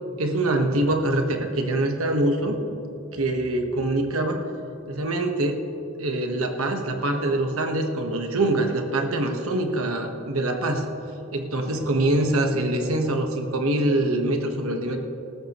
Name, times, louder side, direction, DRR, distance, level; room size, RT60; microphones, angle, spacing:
voice 1, 0.2-2.6 3.1-4.4 4.9-5.6 6.0-10.9 11.3-15.0, right 1 dB, 80° right, 4 dB, 1.3 m, -24 dB
19.0 x 14.0 x 3.0 m, 2.9 s
head